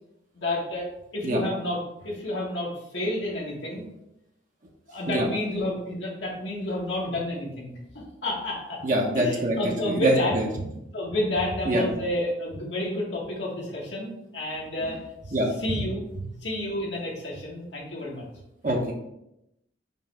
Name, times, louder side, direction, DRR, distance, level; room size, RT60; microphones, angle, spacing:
voice 1, 0.3-0.8 1.1-3.8 4.9-8.8 9.1-10.3 10.9-16.0 16.4-18.2, left 1 dB, 70° left, -5 dB, 1.7 m, -30 dB
voice 2, 8.8-9.6 9.8-10.5 11.6-11.8 15.3-15.5 18.6-18.9, right 1 dB, 45° right, 0 dB, 0.8 m, -24 dB
5.4 x 3.3 x 5.5 m, 0.86 s
head